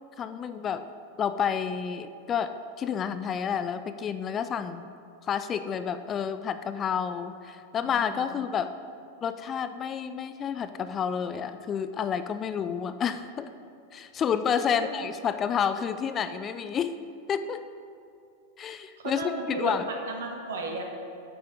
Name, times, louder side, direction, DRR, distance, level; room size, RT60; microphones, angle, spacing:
voice 1, 0.2-0.9 1.2-4.9 5.2-8.7 9.2-13.5 13.9-16.9 17.3-17.6 18.6-19.8, left 7 dB, 25° left, 11 dB, 0.3 m, -30 dB
voice 2, 7.8-8.3 14.7-14.9 19.0-20.8, right 2 dB, 60° right, 2 dB, 1.2 m, -34 dB
9.5 x 6.0 x 5.1 m, 2.5 s
figure-of-eight pair, 90°, 0 cm